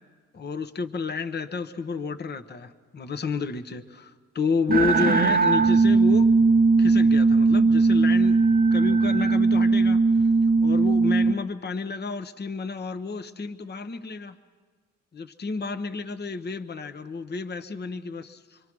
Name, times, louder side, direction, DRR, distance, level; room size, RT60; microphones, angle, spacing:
voice 1, 0.3-6.3 6.8-8.4 8.7-10.0 10.6-14.3 15.1-18.6, left 4 dB, 35° left, 8 dB, 1.0 m, -30 dB
sound 1, 4.7-11.3, right 4 dB, 30° right, 0.7 m, -19 dB
26.0 x 23.5 x 6.1 m, 1.5 s
cardioid pair, 90°, 31 cm